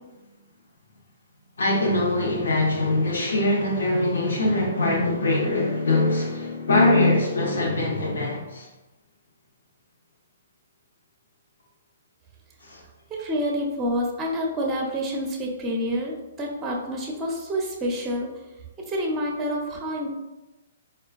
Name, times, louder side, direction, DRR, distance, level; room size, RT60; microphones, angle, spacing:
voice 1, 1.6-8.7 12.6-12.8, left 2 dB, 85° left, -2 dB, 0.8 m, -22 dB
voice 2, 13.1-18.3 18.9-20.1, equal, 15° right, 0 dB, 0.6 m, -28 dB
4.3 x 2.3 x 2.4 m, 1.1 s
hypercardioid pair, 140°, 0 cm